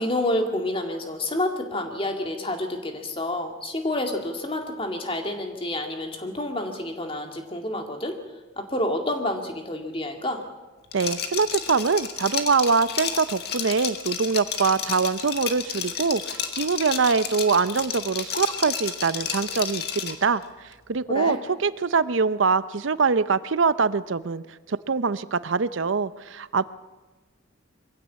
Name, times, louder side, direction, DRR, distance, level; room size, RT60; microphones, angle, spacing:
voice 1, 0.0-8.2 8.6-10.4 21.1-21.4, left 1 dB, 25° left, 4 dB, 2.2 m, -28 dB
Liquid, 10.9-20.3, left 7 dB, 50° left, 1.9 m, -31 dB
voice 2, 10.9-20.4 20.9-21.4 21.6-24.4 24.7-26.7, right 5 dB, 75° right, 15 dB, 0.6 m, -23 dB
23.0 x 16.0 x 8.5 m, 1.2 s
head